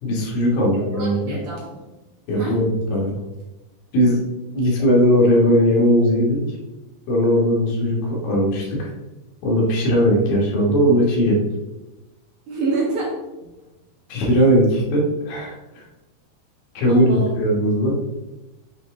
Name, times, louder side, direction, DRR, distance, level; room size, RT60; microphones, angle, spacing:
voice 1, 0.0-1.3 2.3-3.1 3.9-4.2 4.5-6.4 7.1-8.9 9.4-11.4 14.1-15.8 16.7-18.0, equal, 65° left, -3 dB, 2.9 m, -18 dB
voice 2, 0.7-1.8 2.4-2.6 12.5-13.2 16.9-17.3, right 3 dB, 60° right, -4 dB, 2.3 m, -27 dB
6.7 x 4.2 x 3.6 m, 1.0 s
omnidirectional pair, 4.9 m